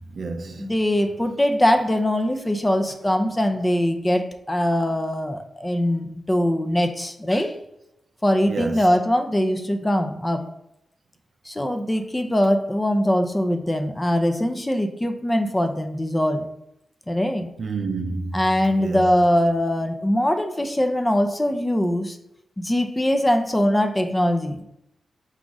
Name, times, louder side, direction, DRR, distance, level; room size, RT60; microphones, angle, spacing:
voice 1, 0.0-0.7 8.5-8.8 17.6-18.5 18.7-19.0, right 4 dB, 60° right, 0.5 m, -29 dB
voice 2, 0.6-7.6 8.2-10.5 11.5-16.5 17.1-17.5 18.3-22.2 22.6-24.6, equal, 15° left, 0.6 m, -22 dB
4.6 x 2.4 x 3.9 m
cardioid pair, 55°, 0 cm